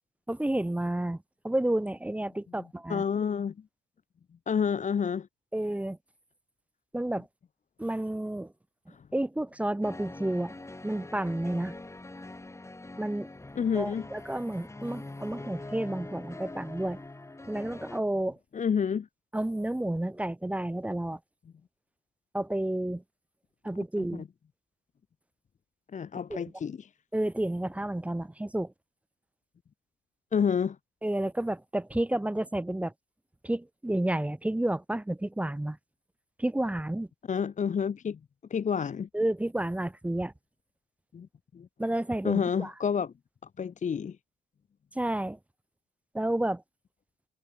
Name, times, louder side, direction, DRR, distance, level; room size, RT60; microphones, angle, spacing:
voice 1, 0.3-3.0 5.5-6.0 6.9-7.3 7.8-8.5 8.9-10.5 10.8-11.8 13.0-13.3 13.8-17.0 17.4-18.4 19.3-21.2 22.3-23.0 23.6-24.2 26.3-26.4 27.1-28.7 31.0-32.9 33.4-35.8 36.4-37.1 39.1-40.3 41.8-42.7 44.9-45.4 46.1-46.6, right 1 dB, 5° right, 0.6 m, -30 dB
voice 2, 2.9-3.5 4.5-5.3 8.9-9.0 13.6-14.0 18.5-19.1 24.0-24.1 25.9-26.9 30.3-30.8 37.3-38.2 38.5-39.1 41.1-41.3 41.5-41.7 42.2-43.1 43.6-44.2, left 7 dB, 40° left, 0.9 m, -29 dB
sound 1, 9.8-18.0, left 2 dB, 15° left, 2.5 m, -43 dB
cardioid pair, 90°, 20 cm